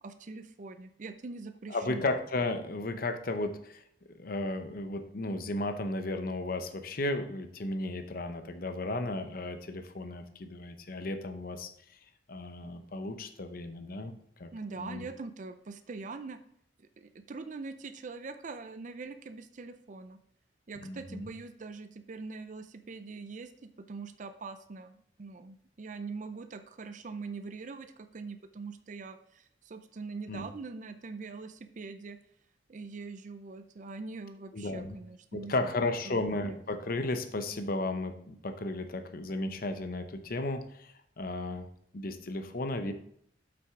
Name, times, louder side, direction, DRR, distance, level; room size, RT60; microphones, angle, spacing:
voice 1, 0.0-2.1 14.5-16.4 16.8-20.2 20.7-23.5 23.8-32.2 32.7-35.8 36.0-36.6, right 4 dB, 45° right, 9 dB, 0.5 m, -43 dB
voice 2, 1.7-3.8 4.1-11.7 12.3-14.1 14.4-14.5 14.8-15.1 20.8-21.3 30.3-30.4 34.5-35.0 35.3-41.7 41.9-42.9, left 2 dB, 50° left, 8 dB, 0.8 m, -34 dB
7.8 x 6.0 x 3.7 m, 0.68 s
head